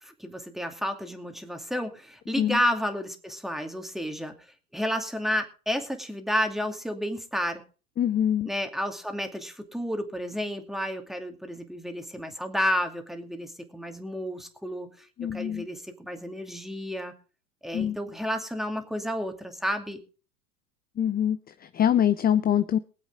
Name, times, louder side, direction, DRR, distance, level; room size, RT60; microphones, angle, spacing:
voice 1, 0.0-4.4 4.7-7.6 8.5-15.1 15.3-17.1 17.6-20.0, equal, ahead, 5 dB, 2.4 m, -31 dB
voice 2, 8.0-8.5 15.2-15.7 17.7-18.0 21.0-22.8, left 9 dB, 20° left, 12 dB, 0.6 m, -24 dB
23.0 x 8.0 x 3.8 m, 0.37 s
hypercardioid pair, 90°, 45 cm